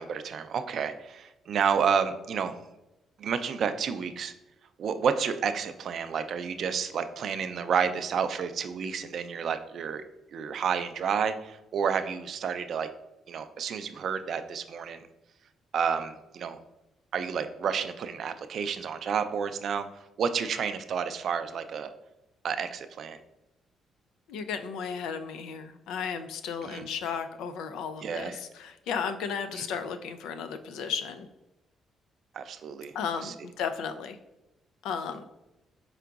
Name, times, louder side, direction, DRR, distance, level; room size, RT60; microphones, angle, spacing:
voice 1, 0.0-2.6 3.2-4.3 4.8-10.0 10.3-12.9 13.3-15.0 15.7-16.6 17.1-21.9 22.4-23.2 26.6-26.8 28.0-28.4 29.6-29.7 32.3-32.9 33.2-33.3, right 6 dB, 60° right, 10 dB, 0.3 m, -30 dB
voice 2, 24.3-31.3 32.9-34.2 34.8-35.3, left 6 dB, 90° left, 9 dB, 0.3 m, -34 dB
4.8 x 3.7 x 2.3 m, 0.95 s
cardioid pair, 90°, 0 cm